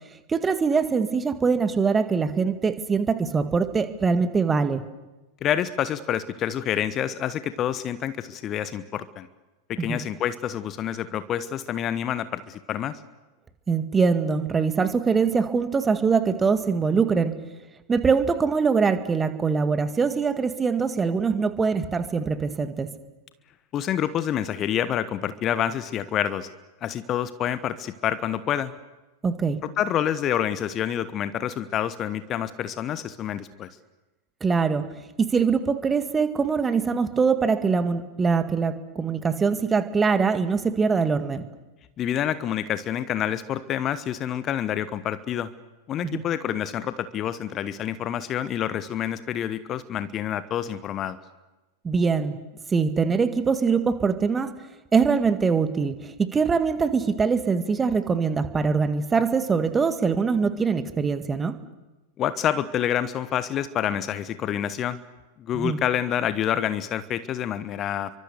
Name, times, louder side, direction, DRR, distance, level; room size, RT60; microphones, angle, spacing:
voice 1, 0.3-4.8 9.8-10.0 13.7-17.3 17.9-22.9 29.2-29.6 34.4-34.9 35.2-41.5 46.0-46.2 51.8-52.3 52.7-54.5 54.9-61.6 65.5-65.8, right 5 dB, 15° right, 10 dB, 1.9 m, -23 dB
voice 2, 5.4-9.3 9.7-13.0 23.7-26.5 26.8-28.7 29.8-33.7 42.0-45.5 45.9-51.2 62.2-65.0 65.4-68.1, left 10 dB, 30° left, 14 dB, 1.1 m, -27 dB
30.0 x 24.0 x 7.0 m, 1.1 s
figure-of-eight pair, 90°, 0 cm